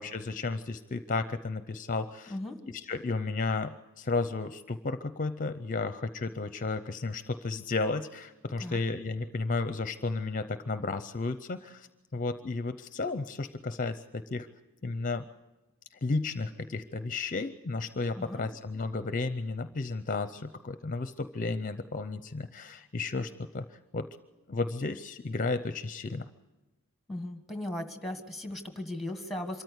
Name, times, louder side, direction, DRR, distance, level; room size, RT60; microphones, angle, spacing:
voice 1, 0.0-2.3 2.7-11.9 12.1-14.5 14.8-15.3 16.0-24.1 24.5-26.3, left 3 dB, 40° left, 11 dB, 0.6 m, -33 dB
voice 2, 27.1-29.6, left 1 dB, ahead, 6 dB, 1.6 m, -37 dB
25.0 x 14.0 x 8.1 m, 1.1 s
head